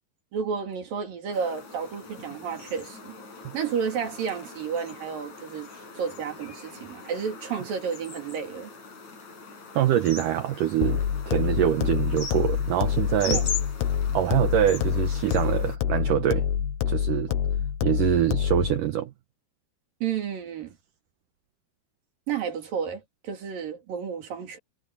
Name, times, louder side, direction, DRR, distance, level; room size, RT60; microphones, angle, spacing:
voice 1, 0.3-3.2 3.5-5.7 5.9-8.7 13.3-13.5 17.3-17.4 20.0-20.7 22.3-24.6, right 7 dB, 55° right, 4.1 m, -31 dB
sound 1, 1.3-15.8, left 5 dB, 40° left, 7.7 m, -40 dB
voice 2, 9.7-13.4 14.1-16.5 16.9-17.3 17.8-19.1, right 11 dB, 80° right, 1.9 m, -24 dB
sound 2, 10.8-18.8, left 8 dB, 75° left, 3.4 m, -27 dB
omnidirectional pair, 5.0 m